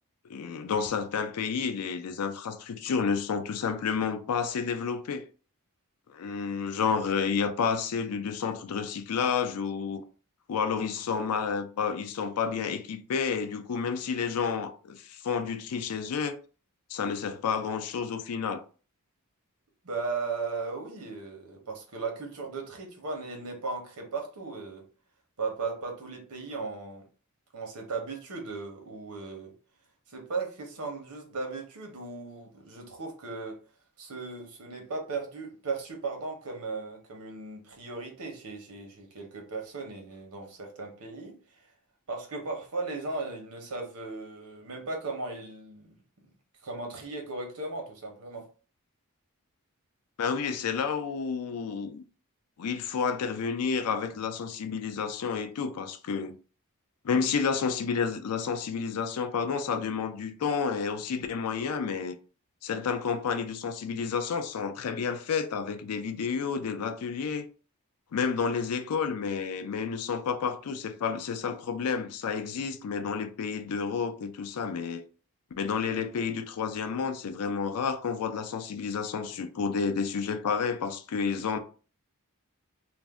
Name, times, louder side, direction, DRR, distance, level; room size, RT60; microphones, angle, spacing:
voice 1, 0.3-5.2 6.1-10.0 10.5-16.4 16.9-18.6 50.2-52.0 52.6-56.4 57.0-62.2 62.6-67.5 68.1-75.0 75.6-81.6, left 6 dB, 80° left, 0.4 m, -30 dB
voice 2, 19.8-24.8 25.4-27.1 27.5-29.5 30.1-33.6 34.0-41.4 42.1-45.9 46.6-48.5 72.3-72.4, right 3 dB, 85° right, 0.9 m, -37 dB
2.5 x 2.1 x 3.4 m
head